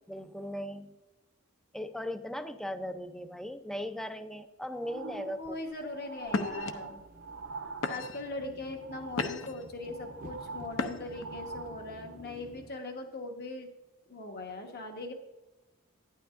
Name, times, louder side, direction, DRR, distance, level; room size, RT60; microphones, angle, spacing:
voice 1, 0.1-1.0 1.7-5.6 7.9-8.0, equal, ahead, 9 dB, 0.5 m, -38 dB
sound 1, 4.7-8.4 8.8-9.5 9.8-12.2 12.8-12.9, right 4 dB, 85° right, 0.6 m, -44 dB
sound 2, 4.8-12.7, right 2 dB, 45° right, 0.7 m, -52 dB
sound 3, 5.4-5.7 6.3-6.7 7.4-7.5 7.8-8.3 8.8-9.6 10.7-11.2, left 3 dB, 75° left, 0.8 m, -34 dB
voice 2, 5.4-7.0 7.9-13.7 14.1-15.1, left 2 dB, 50° left, 4 dB, 1.2 m, -40 dB
12.0 x 9.9 x 2.5 m, 1.1 s
head